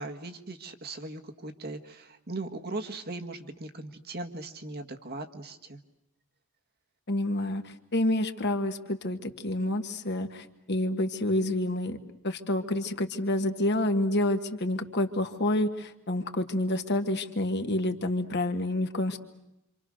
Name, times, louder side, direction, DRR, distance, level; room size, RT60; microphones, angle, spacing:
voice 1, 0.0-5.8, right 2 dB, 50° right, 5 dB, 1.6 m, -39 dB
voice 2, 7.1-12.0 12.2-19.2, left 1 dB, 55° left, 6 dB, 1.7 m, -28 dB
27.5 x 26.0 x 6.5 m, 0.91 s
head